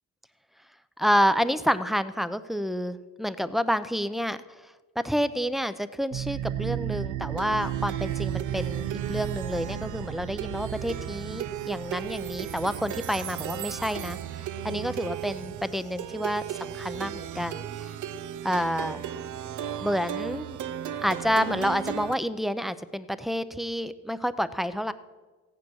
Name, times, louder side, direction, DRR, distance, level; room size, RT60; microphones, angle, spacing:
voice 1, 1.0-4.4 5.0-17.9 18.4-19.0 19.8-20.6 21.0-24.9, equal, ahead, 12 dB, 0.6 m, -29 dB
Plucked string instrument, 6.1-22.1, right 10 dB, 75° right, 0.8 m, -34 dB
15.0 x 9.7 x 6.4 m, 1.3 s
cardioid pair, 90°, 30 cm